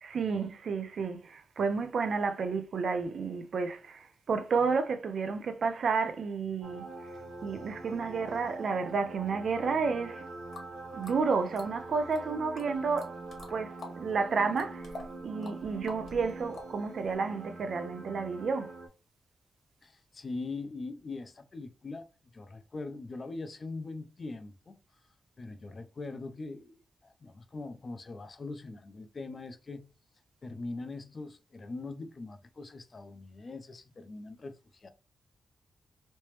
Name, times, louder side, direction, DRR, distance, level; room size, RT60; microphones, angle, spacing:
voice 1, 0.0-6.9 7.4-10.3 10.9-13.2 13.5-14.9 15.2-18.7, right 5 dB, 60° right, 0.6 m, -31 dB
sound 1, 6.6-18.9, right 2 dB, 75° right, 0.9 m, -44 dB
sound 2, 10.5-10.7 11.0-12.2 12.6-14.0 14.3-17.1, left 2 dB, 60° left, 1.2 m, -47 dB
voice 2, 19.8-22.1 22.3-24.8 25.4-29.9 30.4-34.9, left 3 dB, 35° left, 0.5 m, -42 dB
3.2 x 3.0 x 3.1 m
wide cardioid pair, 155°, 0 cm